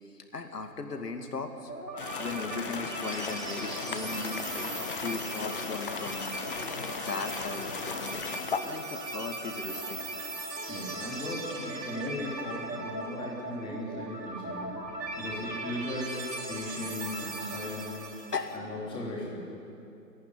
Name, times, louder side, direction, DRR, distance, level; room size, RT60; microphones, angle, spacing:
voice 1, 0.0-1.7 2.2-4.5 4.8-6.4 7.0-8.3 8.6-10.1 18.3-18.5, left 4 dB, 70° left, 5 dB, 2.6 m, -37 dB
sound 1, 1.7-18.6, right 2 dB, 80° right, 3.3 m, -38 dB
sound 2, 2.0-8.6, left 6 dB, 30° left, 0.9 m, -37 dB
voice 2, 10.7-14.9 15.1-16.2 16.5-18.1 18.5-19.4, left 1 dB, 10° left, -3 dB, 3.1 m, -37 dB
27.0 x 11.5 x 10.0 m, 2.8 s
figure-of-eight pair, 145°, 50 cm